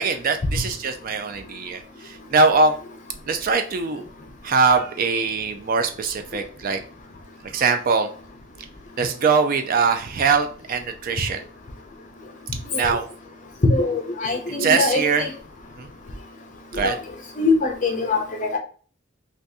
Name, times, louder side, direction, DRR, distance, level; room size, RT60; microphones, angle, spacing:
voice 1, 0.0-2.8 3.3-4.1 4.4-6.8 7.4-8.1 9.0-11.4 12.7-13.1 14.5-15.3 15.8-15.9 16.7-17.0, right 4 dB, 45° right, 7 dB, 0.3 m, -22 dB
voice 2, 13.7-15.3 16.8-16.9 17.4-18.6, left 3 dB, 40° left, 4 dB, 0.6 m, -23 dB
2.6 x 2.5 x 3.5 m, 0.40 s
head